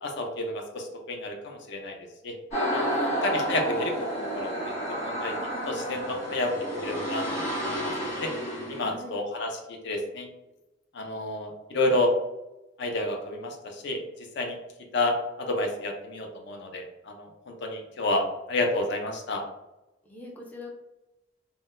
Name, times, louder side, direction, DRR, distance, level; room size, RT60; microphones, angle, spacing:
voice 1, 0.0-1.9 2.2-2.3 2.7-2.9 3.2-4.1 4.3-4.7 5.0-5.3 5.7-6.5 6.8-7.9 8.2-8.3 8.7-10.3 10.9-12.1 12.8-14.0 14.4-14.6 14.9-19.4, left 2 dB, 60° left, 3 dB, 0.5 m, -30 dB
sound 1, 2.5-8.9, right 1 dB, 35° left, 1.4 m, -30 dB
voice 2, 2.8-3.2 8.8-9.2 20.0-20.7, left 1 dB, 10° left, -1 dB, 0.4 m, -41 dB
3.6 x 2.1 x 2.5 m, 0.99 s
head